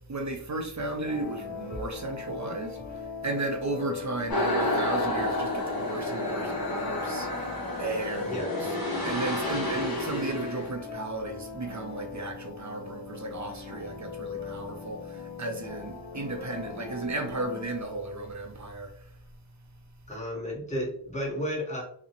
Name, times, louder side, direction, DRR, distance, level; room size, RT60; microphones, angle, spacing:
voice 1, 0.1-8.4 9.1-19.1, right 2 dB, 40° right, 0.4 m, -34 dB
sound 1, 1.0-18.3, left 5 dB, 70° left, 0.7 m, -41 dB
sound 2, 4.3-10.7, left 1 dB, 50° left, 1.2 m, -30 dB
voice 2, 8.2-8.7 20.1-21.8, equal, 15° left, 1.0 m, -33 dB
2.5 x 2.0 x 2.8 m
wide cardioid pair, 45°, 45 cm